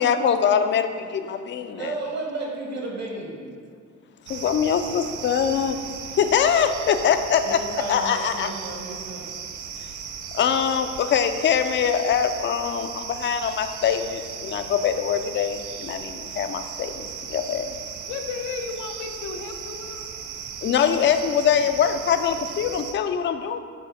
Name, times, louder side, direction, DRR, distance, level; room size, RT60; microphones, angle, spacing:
voice 1, 0.0-1.9 4.3-5.8 6.2-8.5 9.8-9.9 10.3-17.8 20.6-23.6, left 8 dB, 40° left, 8 dB, 0.4 m, -23 dB
voice 2, 1.7-3.5 7.4-9.3, right 2 dB, 60° right, -1 dB, 1.5 m, -33 dB
sound 1, 4.3-22.9, right 7 dB, 80° right, 0.5 m, -37 dB
voice 3, 18.0-20.1, left 5 dB, 85° left, 5 dB, 0.6 m, -34 dB
6.3 x 3.6 x 4.1 m, 2.1 s
cardioid pair, 90°, 30 cm